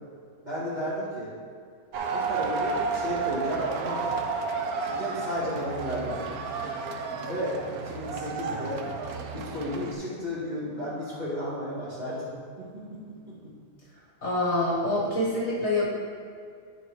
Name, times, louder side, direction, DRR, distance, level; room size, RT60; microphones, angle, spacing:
voice 1, 0.4-1.3 2.1-4.1 4.8-6.3 7.2-8.8 9.3-12.3 12.6-13.5, equal, 25° right, -9 dB, 2.1 m, -33 dB
sound 1, 1.9-9.9, right 5 dB, 70° right, 1.1 m, -31 dB
voice 2, 14.2-15.9, left 1 dB, 45° left, -5 dB, 1.7 m, -26 dB
11.0 x 4.0 x 4.8 m, 2.3 s
omnidirectional pair, 1.7 m